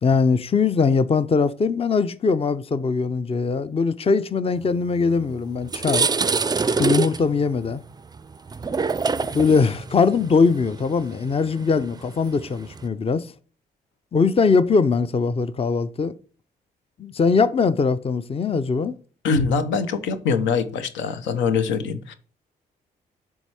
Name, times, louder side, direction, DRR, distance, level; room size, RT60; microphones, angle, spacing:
voice 1, 0.0-6.1 6.8-7.8 9.3-13.3 14.1-16.1 17.0-19.0, left 4 dB, 30° left, 0.5 m, -21 dB
sound 1, 5.1-5.2 5.5-12.9, right 4 dB, 20° right, 0.4 m, -26 dB
voice 2, 19.2-22.1, left 5 dB, 85° left, 0.8 m, -23 dB
7.1 x 3.6 x 4.7 m
supercardioid pair, 60°, 19 cm